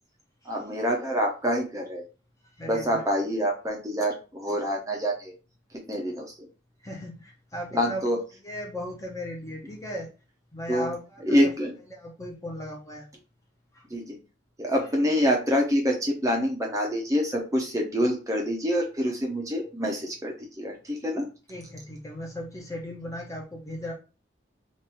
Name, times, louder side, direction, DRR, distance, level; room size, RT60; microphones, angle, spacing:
voice 1, 0.4-2.0 2.6-5.3 5.7-6.5 7.7-8.2 10.7-10.9 11.2-11.7 13.9-14.2 14.6-21.3, equal, 15° right, 0 dB, 0.6 m, -26 dB
voice 2, 2.6-3.0 6.8-8.0 8.4-10.1 10.5-11.0 12.0-13.1 21.5-23.9, equal, 15° left, -1 dB, 0.7 m, -36 dB
3.1 x 2.5 x 4.2 m, 0.33 s
head